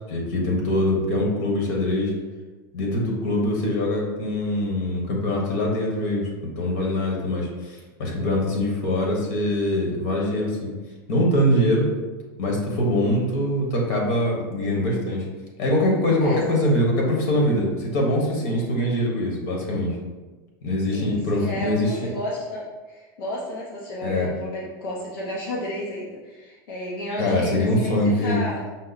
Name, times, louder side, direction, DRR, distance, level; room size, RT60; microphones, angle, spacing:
voice 1, 0.1-2.1 2.7-10.7 11.1-11.9 12.4-15.2 15.6-20.0 20.6-21.9 24.0-24.3 27.2-28.4, left 1 dB, 55° left, -1 dB, 1.1 m, -23 dB
voice 2, 20.9-28.6, left 1 dB, 85° left, -5 dB, 0.8 m, -32 dB
5.5 x 2.1 x 4.0 m, 1.3 s
supercardioid pair, 165°, 12 cm